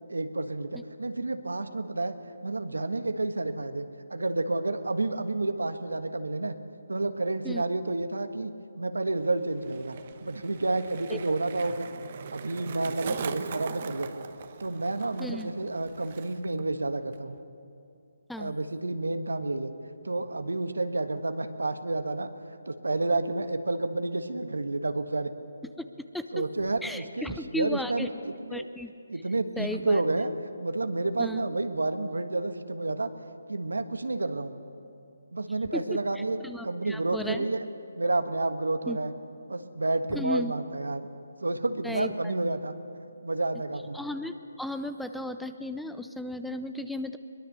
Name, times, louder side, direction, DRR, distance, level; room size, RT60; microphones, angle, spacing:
voice 1, 0.1-2.2 2.4-6.6 6.9-9.9 10.2-11.9 12.3-14.2 14.6-17.4 18.4-19.7 20.0-22.3 22.7-25.3 26.3-28.1 28.5-28.7 29.1-30.3 30.6-33.1 33.5-34.5 35.3-36.4 36.6-37.6 37.9-39.1 39.5-41.1 41.4-42.7 43.2-44.0, right 2 dB, 90° right, 8 dB, 1.4 m, -30 dB
Skateboard, 9.1-16.6 16.9-17.4, right 7 dB, 45° right, 1.1 m, -42 dB
voice 2, 15.2-15.5 18.3-18.5 25.8-25.9 26.1-26.5 26.8-28.1 28.5-28.9 29.6-30.0 31.2-31.4 35.7-37.5 38.9-39.0 40.1-40.5 41.8-42.3 43.9-47.2, left 1 dB, ahead, 9 dB, 0.6 m, -35 dB
22.5 x 21.0 x 6.8 m, 2.5 s
figure-of-eight pair, 155°, 0 cm